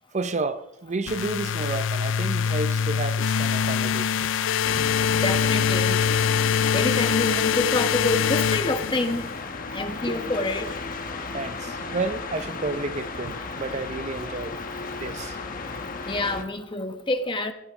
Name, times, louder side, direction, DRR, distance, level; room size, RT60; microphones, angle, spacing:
voice 1, 0.1-4.4 4.7-4.8 10.1-10.2 11.3-14.6 15.0-15.4, right 3 dB, 40° right, 0.6 m, -31 dB
sound 1, 1.1-9.4, left 7 dB, 85° left, 0.4 m, -24 dB
sound 2, 4.6-16.4, left 3 dB, 45° left, 1.2 m, -34 dB
voice 2, 5.1-6.0 6.7-9.2 9.7-10.7 16.1-17.5, left 2 dB, 25° left, 1.1 m, -27 dB
17.0 x 12.5 x 3.6 m
head